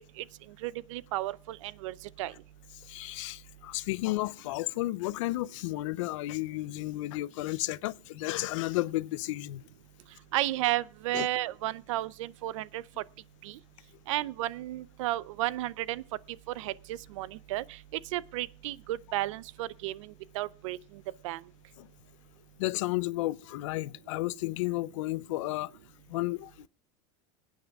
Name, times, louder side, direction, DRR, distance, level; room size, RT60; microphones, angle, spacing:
voice 1, 0.6-2.3 10.3-12.8 13.4-13.6 14.1-16.0 16.6-17.6 18.1-20.1 20.3-20.8 21.2-21.4, right 16 dB, 90° right, 0.6 m, -33 dB
voice 2, 2.8-9.6 11.1-11.3 21.8-21.9 22.6-25.7 26.1-26.7, left 18 dB, 85° left, 0.5 m, -32 dB
22.5 x 9.2 x 3.5 m
supercardioid pair, 165°, 16 cm